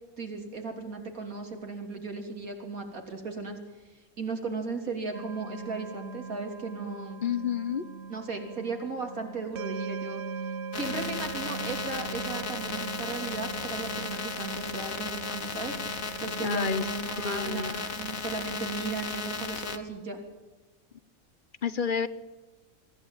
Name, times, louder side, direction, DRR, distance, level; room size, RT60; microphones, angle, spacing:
voice 1, 0.2-3.6 3.9-7.2 8.1-10.2 10.8-20.2, right 3 dB, 75° right, 3 dB, 3.7 m, -36 dB
sound 1, 5.1-18.2, right 5 dB, 55° right, 1.1 m, -40 dB
voice 2, 7.2-7.9 16.4-16.9 17.2-17.8 21.6-22.1, left 7 dB, 40° left, 15 dB, 0.9 m, -30 dB
sound 2, 10.7-19.8, left 5 dB, 70° left, 2.0 m, -35 dB
23.5 x 15.0 x 9.0 m, 1.2 s
omnidirectional pair, 1.5 m